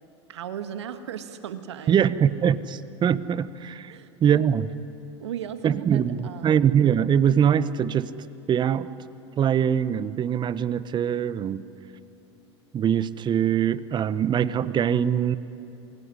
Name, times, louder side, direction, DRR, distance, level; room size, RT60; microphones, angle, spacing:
voice 1, 0.3-2.1 3.9-4.5 5.2-6.6, right 9 dB, 80° right, 9 dB, 1.7 m, -37 dB
voice 2, 1.9-4.7 5.6-8.1 8.5-8.9 9.4-11.6 12.7-15.4, right 8 dB, 30° right, 16 dB, 1.1 m, -23 dB
27.5 x 22.0 x 9.8 m, 2.8 s
hypercardioid pair, 90°, 14 cm